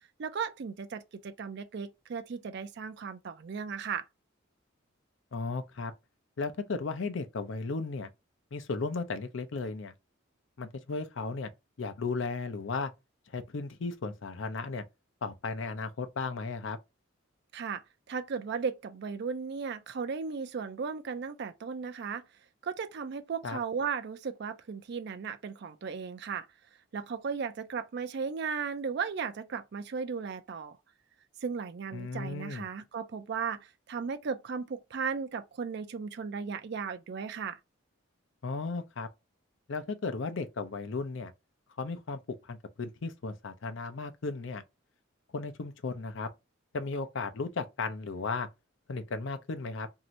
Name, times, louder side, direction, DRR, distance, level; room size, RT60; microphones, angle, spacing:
voice 1, 0.2-4.0 17.5-17.8 18.1-22.2 22.6-26.5 26.9-30.8 31.4-37.6, right 5 dB, 55° right, 0.4 m, -36 dB
voice 2, 5.3-5.9 6.4-8.1 8.5-9.9 10.6-11.5 11.8-12.9 13.3-14.8 15.2-16.8 23.4-23.6 31.9-32.6 38.4-39.1 39.7-41.3 41.8-44.6 45.3-46.3 46.7-48.5 48.9-49.9, left 4 dB, 65° left, 0.5 m, -35 dB
2.7 x 2.5 x 3.0 m
head